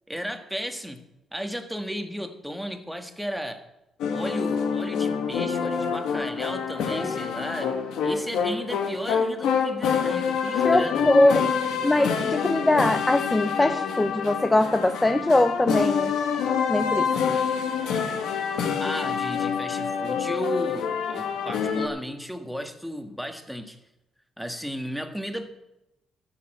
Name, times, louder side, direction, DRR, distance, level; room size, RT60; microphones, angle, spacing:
voice 1, 0.1-1.0 1.3-3.6 4.1-7.7 8.0-11.1 18.8-23.8 24.4-25.5, equal, ahead, 7 dB, 1.5 m, -34 dB
sound 1, 4.0-21.9, left 6 dB, 80° left, 1.6 m, -26 dB
voice 2, 10.6-11.5 11.8-16.1 16.7-17.1, left 1 dB, 15° left, 9 dB, 0.6 m, -22 dB
12.5 x 6.8 x 7.8 m, 0.92 s
cardioid pair, 90°, 0 cm